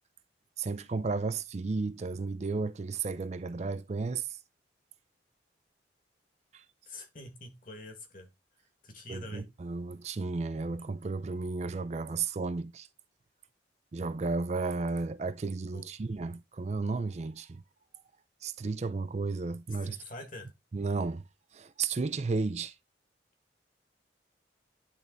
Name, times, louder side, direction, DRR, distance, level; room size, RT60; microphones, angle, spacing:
voice 1, 0.6-4.4 6.5-6.6 9.1-12.9 13.9-17.6 18.4-20.0 20.7-21.2 21.5-22.8, right 4 dB, 35° right, 0.4 m, -33 dB
voice 2, 6.9-8.3 8.8-9.5 15.7-15.9 19.8-20.5, left 2 dB, 45° left, 1.9 m, -45 dB
10.5 x 3.6 x 3.8 m
head